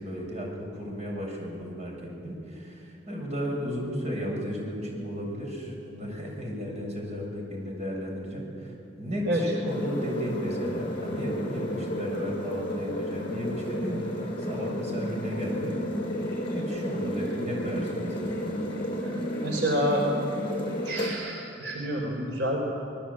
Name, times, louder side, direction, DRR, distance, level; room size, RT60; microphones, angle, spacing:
voice 1, 0.0-1.9 2.2-15.7 16.5-18.4, equal, 40° right, -1 dB, 7.2 m, -34 dB
sound 1, 9.7-21.1, equal, 30° left, 6.4 m, -32 dB
voice 2, 19.4-20.1 20.8-22.6, right 1 dB, 75° right, 0 dB, 4.0 m, -28 dB
27.0 x 20.5 x 8.7 m, 2.6 s
head